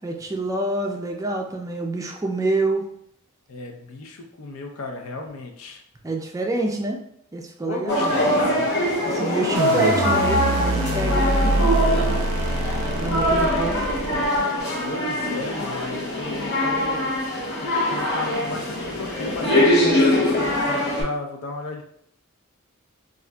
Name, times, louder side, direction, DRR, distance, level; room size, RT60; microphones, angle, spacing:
voice 1, 0.0-2.9 6.0-7.0 7.3-8.1 9.0-11.8 13.0-13.8, right 2 dB, 15° right, 2 dB, 0.3 m, -27 dB
voice 2, 3.5-5.8 7.6-8.7 14.9-17.1 17.6-21.8, left 2 dB, 70° left, 2 dB, 0.5 m, -34 dB
sound 1, 7.9-21.0, left 1 dB, 55° left, 1.0 m, -23 dB
sound 2, 9.5-14.6, right 2 dB, 90° right, 0.4 m, -24 dB
Bowed string instrument, 9.9-14.0, right 2 dB, 90° left, 0.9 m, -37 dB
3.7 x 2.4 x 2.2 m, 0.68 s
head